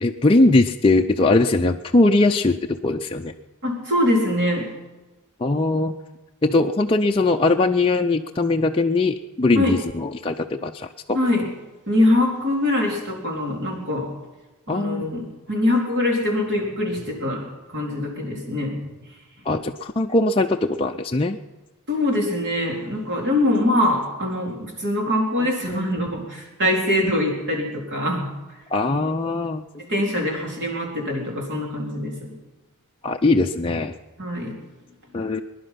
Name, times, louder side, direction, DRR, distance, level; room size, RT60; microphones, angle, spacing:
voice 1, 0.0-3.3 5.4-5.9 6.4-11.2 14.7-15.1 19.5-21.4 25.6-25.9 28.7-29.7 33.0-33.9 35.1-35.4, left 2 dB, 25° left, 2 dB, 0.5 m, -20 dB
voice 2, 3.6-4.7 9.5-9.8 11.1-11.5 11.9-14.1 14.7-17.5 17.7-18.8 21.9-28.3 29.8-32.3 34.2-34.5, left 1 dB, 50° right, -1 dB, 3.9 m, -23 dB
21.5 x 11.0 x 5.8 m, 1.2 s
head